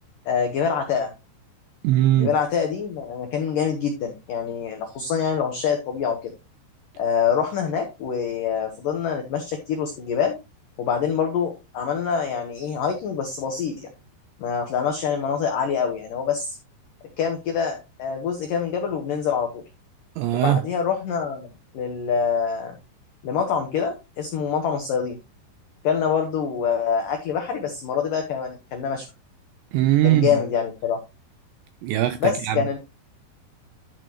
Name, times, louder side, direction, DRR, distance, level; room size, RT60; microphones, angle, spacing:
voice 1, 0.3-1.1 2.2-6.3 7.0-10.3 10.8-13.9 14.4-16.6 17.2-19.6 20.3-22.8 23.2-25.2 25.8-29.1 30.0-31.0 32.2-32.8, left 7 dB, 85° left, 1.9 m, -25 dB
voice 2, 1.8-2.3 20.2-20.6 29.7-30.4 31.8-32.6, right 13 dB, 85° right, 2.6 m, -20 dB
12.0 x 6.9 x 3.0 m
omnidirectional pair, 5.8 m